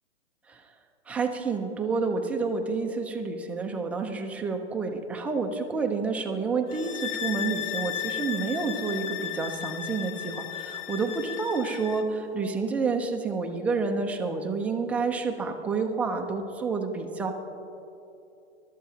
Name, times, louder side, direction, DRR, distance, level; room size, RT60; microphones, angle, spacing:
voice 1, 1.1-17.3, right 4 dB, 5° right, 3 dB, 0.4 m, -29 dB
sound 1, 6.7-12.1, left 11 dB, 75° left, 0.8 m, -35 dB
21.0 x 12.5 x 2.8 m, 2.9 s
hypercardioid pair, 130°, 35 cm